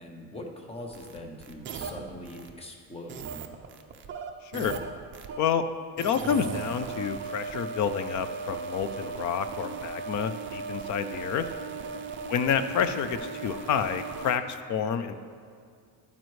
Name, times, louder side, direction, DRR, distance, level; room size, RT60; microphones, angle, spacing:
voice 1, 0.0-3.3 11.7-12.1, left 1 dB, 15° left, 2 dB, 0.8 m, -42 dB
sound 1, 0.9-2.5 3.1-5.4 6.0-14.4, right 5 dB, 30° right, 0.5 m, -37 dB
voice 2, 4.4-4.8 5.4-5.6 6.0-11.5 12.3-15.1, left 7 dB, 50° left, 11 dB, 0.4 m, -29 dB
11.5 x 9.2 x 3.1 m, 2.2 s
cardioid pair, 170°, 40 cm